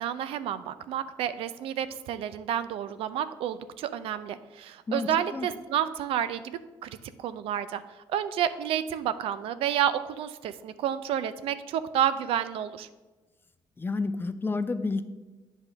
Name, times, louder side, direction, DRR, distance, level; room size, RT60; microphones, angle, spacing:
voice 1, 0.0-6.9 7.2-7.8 8.1-12.9, right 10 dB, 75° right, 13 dB, 0.5 m, -30 dB
voice 2, 4.9-5.5 13.8-15.0, left 3 dB, 20° left, 11 dB, 0.5 m, -30 dB
8.2 x 3.6 x 6.5 m, 1.2 s
cardioid pair, 85°, 10 cm